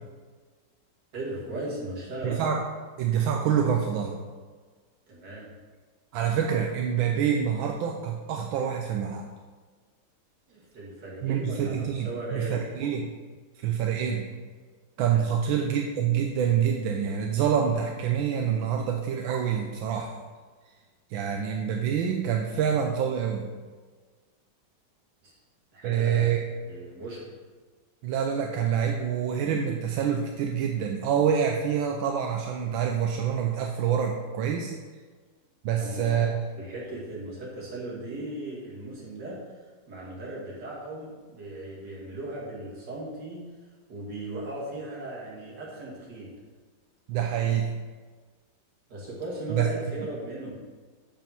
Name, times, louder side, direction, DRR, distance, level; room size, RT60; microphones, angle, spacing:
voice 1, 1.1-2.4 5.1-5.5 10.5-12.6 15.0-15.3 25.2-25.4 25.7-26.3 26.6-27.3 35.8-36.3 36.6-39.4 39.9-43.4 43.9-46.3 48.9-50.5, right 1 dB, 60° right, -5 dB, 2.8 m, -37 dB
voice 2, 2.2-2.6 3.0-4.2 6.1-9.2 11.2-13.1 13.6-14.2 15.0-20.2 21.1-23.4 25.8-26.4 28.0-34.7 35.6-36.3 47.1-47.7 49.5-49.7, right 8 dB, 85° right, 2 dB, 1.4 m, -26 dB
7.1 x 5.5 x 5.8 m, 1.5 s
omnidirectional pair, 2.1 m